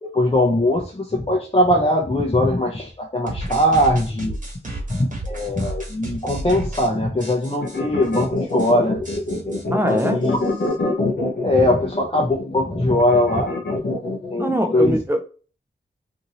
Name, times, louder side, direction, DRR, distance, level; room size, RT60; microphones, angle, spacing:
voice 1, 0.0-4.4 4.9-9.0 9.9-10.4 11.4-13.5 14.3-15.0, left 1 dB, 30° left, 0.7 m, -20 dB
sound 1, 3.3-6.9 7.2-7.8 8.1-8.2 8.5-8.7 9.0-10.7, right 1 dB, 40° right, 1.3 m, -32 dB
sound 2, 7.6-14.3, left 2 dB, 65° left, 0.8 m, -25 dB
voice 2, 9.7-10.2 14.4-15.2, equal, 10° right, 0.6 m, -22 dB
2.7 x 2.6 x 2.9 m
cardioid pair, 50°, 19 cm